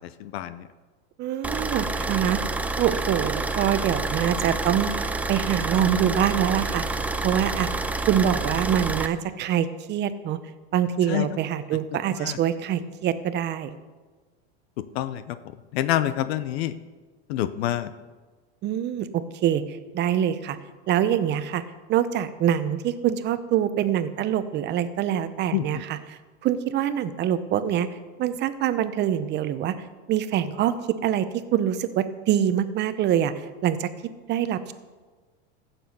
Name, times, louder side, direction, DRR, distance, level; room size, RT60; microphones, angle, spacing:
voice 1, 0.2-0.6 11.1-11.3 12.2-12.4 14.9-15.4 15.7-16.7 17.3-17.9 25.5-25.7, left 13 dB, 65° left, 13 dB, 0.7 m, -26 dB
voice 2, 1.2-2.4 2.8-7.7 8.1-10.4 10.7-13.7 18.6-20.6 20.9-21.6 21.9-27.9 28.2-29.8 30.1-30.7 31.0-33.3 33.6-33.9 34.3-34.7, right 10 dB, 30° right, 12 dB, 0.8 m, -25 dB
sound 1, 1.4-9.1, right 2 dB, 5° right, 0.3 m, -28 dB
15.5 x 7.0 x 5.5 m, 1.3 s
supercardioid pair, 130°, 33 cm